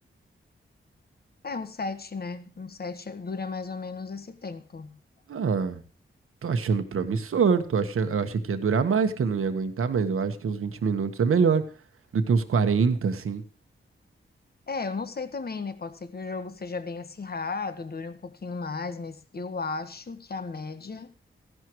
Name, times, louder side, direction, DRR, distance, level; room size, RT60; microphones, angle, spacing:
voice 1, 1.4-5.0 14.7-21.1, left 4 dB, 45° left, 1.4 m, -35 dB
voice 2, 5.3-5.8 6.4-11.6 12.1-13.4, right 5 dB, 85° right, 1.4 m, -24 dB
15.5 x 11.0 x 3.1 m
wide cardioid pair, 80°, 21 cm